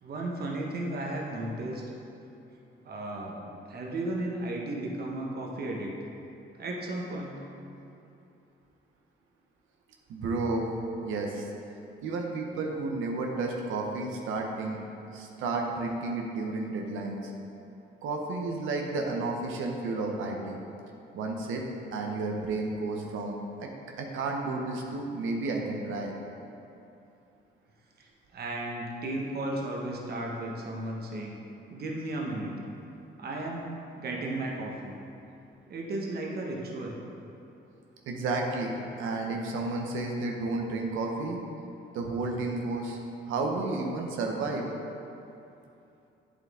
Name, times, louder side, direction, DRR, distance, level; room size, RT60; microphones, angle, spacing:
voice 1, 0.0-1.8 2.8-5.9 6.5-7.4 28.0-31.3 31.7-32.5 33.2-33.7 33.9-34.9 35.7-37.0, right 1 dB, 50° right, -1 dB, 1.3 m, -34 dB
voice 2, 10.1-10.7 11.0-11.5 12.0-14.8 15.1-17.3 18.0-20.6 21.1-21.6 21.9-23.7 24.0-26.1 38.1-41.4 41.9-43.0 43.3-44.7, right 3 dB, 85° right, 1 dB, 0.9 m, -32 dB
8.3 x 7.5 x 3.7 m, 2.8 s
cardioid pair, 90°, 20 cm